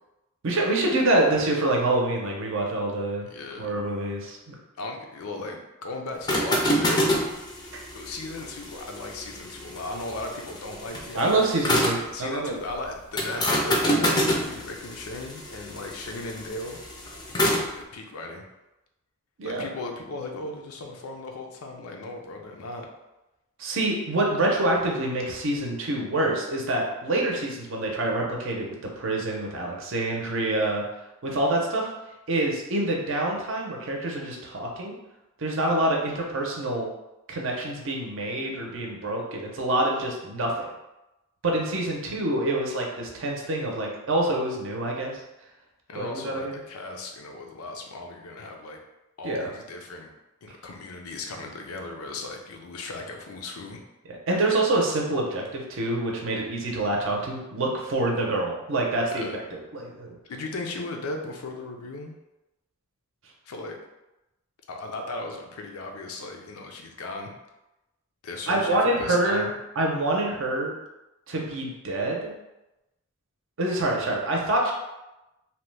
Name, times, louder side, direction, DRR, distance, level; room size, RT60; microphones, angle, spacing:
voice 1, 0.4-3.3 3.6-4.5 11.1-12.5 19.4-19.7 23.6-30.8 31.2-31.9 32.3-34.9 35.4-36.9 37.3-40.7 41.4-45.2 45.9-46.6 49.2-49.5 54.1-60.2 68.5-69.5 69.8-70.7 71.3-72.3 73.6-74.7, right 2 dB, 65° right, -1 dB, 0.6 m, -26 dB
voice 2, 3.3-3.7 4.8-7.1 7.9-11.5 12.0-16.8 17.8-18.4 19.4-22.9 45.9-48.8 49.2-50.1 50.4-53.8 59.1-59.4 60.3-62.1 63.5-63.8 64.7-67.3 68.2-69.5, left 2 dB, 80° left, 3 dB, 0.5 m, -37 dB
sound 1, 6.1-12.1 13.2-17.7, equal, 20° left, 0.4 m, -27 dB
2.8 x 2.2 x 3.2 m, 0.97 s
head